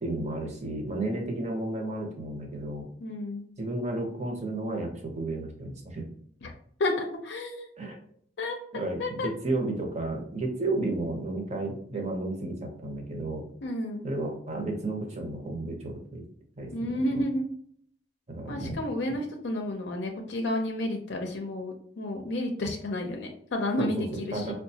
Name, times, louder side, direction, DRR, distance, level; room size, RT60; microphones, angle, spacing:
voice 1, 0.0-2.9 3.6-6.1 7.8-8.0 8.7-13.5 14.0-16.2 16.6-16.7 18.3-18.7 23.8-24.5, right 2 dB, 40° right, 2 dB, 0.8 m, -32 dB
voice 2, 3.0-3.5 6.4-6.5 6.8-7.9 8.4-8.6 9.0-9.3 13.6-14.1 16.7-17.5 18.5-24.5, left 1 dB, 70° left, 2 dB, 0.5 m, -31 dB
4.6 x 2.2 x 2.7 m, 0.63 s
head